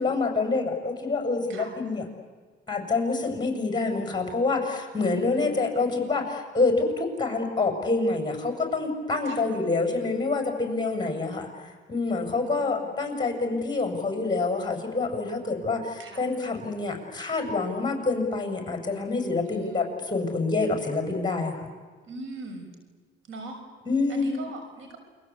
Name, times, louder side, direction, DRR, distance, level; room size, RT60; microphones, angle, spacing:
voice 1, 0.0-2.1 2.7-21.7 23.8-24.5, left 3 dB, 20° left, 4 dB, 6.5 m, -27 dB
voice 2, 5.0-5.5 11.2-11.6 12.5-12.8 16.0-16.2 19.5-19.6 22.1-22.7 23.3-23.6 24.1-25.0, right 2 dB, 75° right, 5 dB, 6.3 m, -40 dB
29.0 x 24.0 x 8.5 m, 1.5 s
cardioid pair, 90°, 20 cm